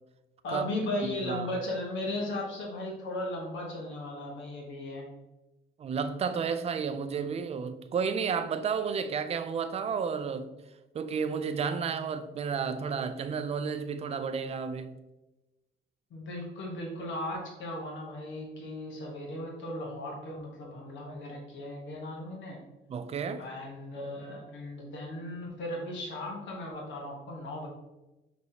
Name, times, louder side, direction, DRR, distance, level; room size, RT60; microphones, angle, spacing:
voice 1, 0.4-5.1 16.1-22.6 23.4-27.7, left 1 dB, 70° left, 1.1 m, -36 dB
voice 2, 5.8-10.5 10.9-14.9 22.9-23.4, right 6 dB, 30° right, 0.3 m, -32 dB
5.5 x 3.0 x 2.7 m
cardioid pair, 90°, 20 cm